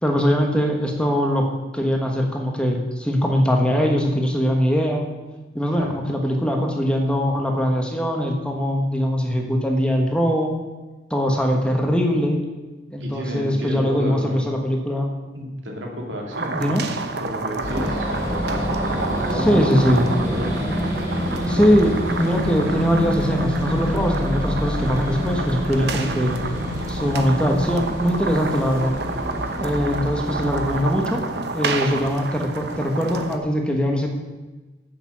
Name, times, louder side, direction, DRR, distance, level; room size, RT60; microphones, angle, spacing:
voice 1, 0.0-1.5 1.7-5.1 5.5-10.5 11.1-12.4 12.9-15.1 16.5-16.8 19.3-20.1 21.5-26.3 26.9-28.9 29.6-31.2 31.5-34.1, equal, 5° left, 2 dB, 1.3 m, -21 dB
voice 2, 13.0-14.4 15.3-21.7 25.8-26.0, equal, 80° right, 0 dB, 2.4 m, -32 dB
sound 1, 16.3-33.4, right 4 dB, 60° right, 0.9 m, -30 dB
sound 2, 17.6-30.8, equal, 15° right, 3.7 m, -26 dB
9.6 x 6.9 x 7.5 m, 1.2 s
head